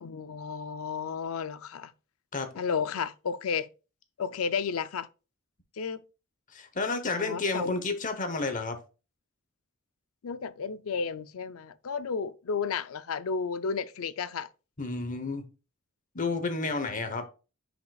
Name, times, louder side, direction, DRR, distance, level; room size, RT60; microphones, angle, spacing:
voice 1, 0.0-1.9 2.6-3.7 4.2-5.1 5.8-6.0 7.1-7.7 10.2-14.5, left 5 dB, 85° left, 0.5 m, -32 dB
voice 2, 6.5-8.8 14.8-15.5 16.1-17.2, left 3 dB, 40° left, 0.9 m, -31 dB
9.4 x 5.1 x 2.3 m
head